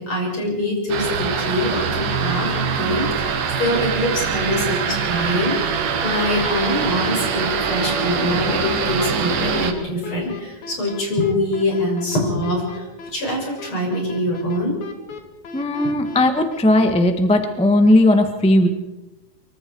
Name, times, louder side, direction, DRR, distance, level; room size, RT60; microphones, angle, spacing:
voice 1, 0.0-12.9 13.1-14.8, left 1 dB, 40° left, -1 dB, 7.3 m, -24 dB
sound 1, 0.9-9.7, right 6 dB, 80° right, 3.4 m, -23 dB
sound 2, 5.9-16.9, left 3 dB, 65° left, 3.6 m, -37 dB
voice 2, 15.5-18.7, left 1 dB, 10° left, 7 dB, 0.3 m, -17 dB
24.5 x 24.0 x 4.8 m, 1.1 s
omnidirectional pair, 3.7 m